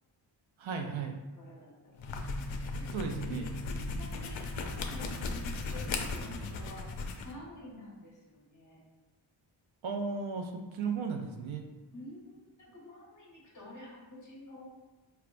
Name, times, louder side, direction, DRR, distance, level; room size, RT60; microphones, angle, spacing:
voice 1, 0.6-1.2 2.9-3.5 9.8-11.6, right 5 dB, 80° right, 4 dB, 0.6 m, -35 dB
voice 2, 1.4-2.0 2.8-8.8 11.9-14.6, left 1 dB, 40° left, -5 dB, 1.4 m, -49 dB
sound 1, 1.9-7.3, left 3 dB, 75° left, 0.6 m, -37 dB
4.7 x 3.3 x 2.5 m, 1.1 s
wide cardioid pair, 140°, 47 cm